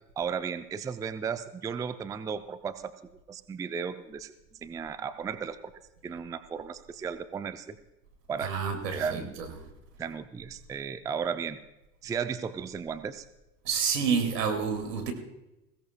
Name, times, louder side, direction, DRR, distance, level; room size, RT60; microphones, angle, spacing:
voice 1, 0.2-5.7 6.0-7.8 8.3-8.5 8.9-9.3 10.0-11.6 12.0-13.3, right 6 dB, 10° right, 12 dB, 0.4 m, -35 dB
voice 2, 8.4-9.6 13.6-15.1, right 6 dB, 80° right, 5 dB, 2.4 m, -29 dB
21.5 x 16.5 x 2.3 m, 0.96 s
hypercardioid pair, 85°, 47 cm